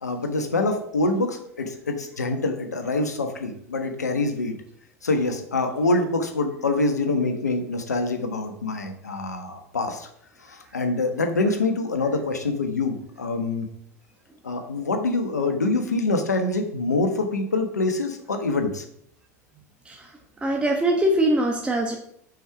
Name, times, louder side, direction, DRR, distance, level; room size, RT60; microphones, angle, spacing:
voice 1, 0.0-4.5 5.0-10.1 10.4-13.7 14.4-18.8, left 2 dB, 85° left, 5 dB, 1.3 m, -25 dB
voice 2, 20.4-22.0, right 1 dB, 10° right, 1 dB, 1.2 m, -22 dB
6.2 x 5.2 x 5.8 m, 0.70 s
figure-of-eight pair, 85°, 9 cm